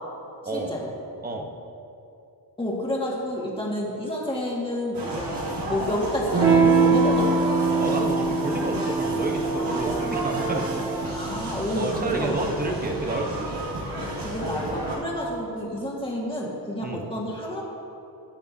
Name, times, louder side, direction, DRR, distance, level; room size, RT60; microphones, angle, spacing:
voice 1, 0.5-0.9 2.6-5.4 5.7-7.3 9.6-9.7 11.1-12.5 13.9-17.6, left 1 dB, 15° left, -4 dB, 1.9 m, -29 dB
sound 1, 4.9-15.0, right 2 dB, 85° right, 2.0 m, -31 dB
Electric guitar / Strum, 6.3-11.4, right 4 dB, 50° right, 1.8 m, -23 dB
voice 2, 7.8-10.9 11.7-13.6 16.8-17.0, right 2 dB, 25° right, 2 dB, 1.0 m, -30 dB
17.5 x 9.3 x 2.7 m, 2.7 s
wide cardioid pair, 160°, 40 cm